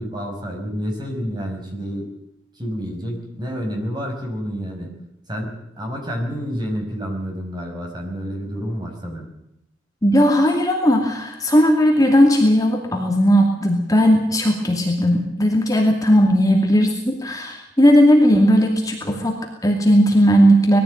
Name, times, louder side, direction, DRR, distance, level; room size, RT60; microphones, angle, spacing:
voice 1, 0.0-2.1 2.5-4.9 5.3-9.3, equal, 25° right, 2 dB, 5.4 m, -29 dB
voice 2, 10.0-20.8, equal, 20° left, 1 dB, 2.5 m, -16 dB
21.0 x 15.0 x 8.9 m, 0.83 s
head